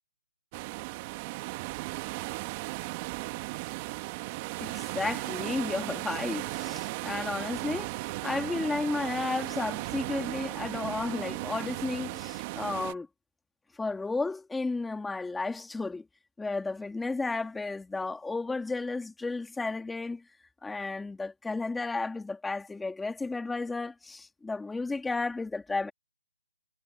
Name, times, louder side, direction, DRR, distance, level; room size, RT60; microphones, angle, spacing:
sound 1, 0.5-12.9, right 23 dB, 25° right, 1.8 m, -36 dB
voice 1, 4.6-7.9 8.2-13.1 13.8-16.0 16.4-20.2 20.6-25.9, left 3 dB, 5° left, 2.5 m, -33 dB
hypercardioid pair, 155°, 0 cm